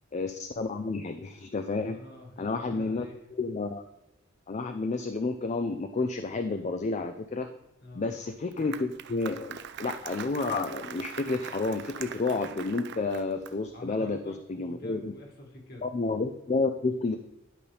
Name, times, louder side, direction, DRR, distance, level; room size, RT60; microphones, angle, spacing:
voice 1, 0.1-2.0 2.4-3.1 3.3-3.8 4.5-7.5 7.9-15.1 15.8-17.2, left 3 dB, 35° left, 8 dB, 0.4 m, -30 dB
voice 2, 1.9-3.3 7.8-8.1 13.7-15.9, left 1 dB, 50° left, 0 dB, 1.8 m, -46 dB
Applause, 8.3-13.8, right 8 dB, 55° right, 0.4 m, -42 dB
11.0 x 5.5 x 3.4 m, 0.91 s
head